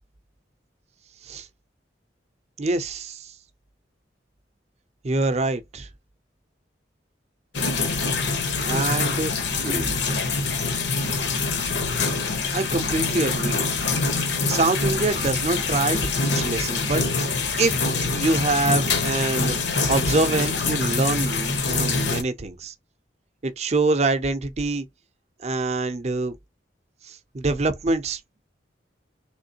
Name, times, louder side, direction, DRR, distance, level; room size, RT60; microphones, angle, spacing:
voice 1, 2.6-3.3 5.0-5.9 8.6-9.3 9.6-10.0 10.9-11.0 12.5-13.6 14.5-17.0 17.6-22.7 23.4-24.9 25.4-26.4 27.1-28.2, right 3 dB, 35° right, 0.5 m, -25 dB
sound 1, 7.5-22.2, left 4 dB, 75° left, 0.9 m, -25 dB
3.6 x 3.1 x 2.7 m
head